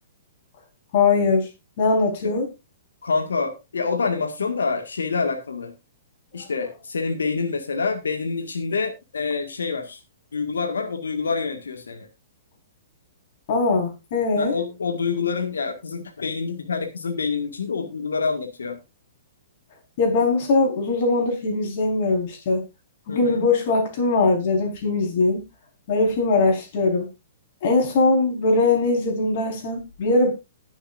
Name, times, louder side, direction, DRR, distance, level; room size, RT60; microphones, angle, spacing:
voice 1, 0.9-1.5 1.8-2.5 13.5-14.5 20.0-22.6 23.1-25.4 25.9-27.1 27.6-30.3, left 3 dB, 50° left, 4.7 m, -21 dB
voice 2, 3.0-5.7 6.3-10.0 10.3-12.1 14.4-18.8 23.1-23.5, left 4 dB, 80° left, 1.8 m, -27 dB
20.0 x 7.2 x 2.6 m
hypercardioid pair, 120°, 0 cm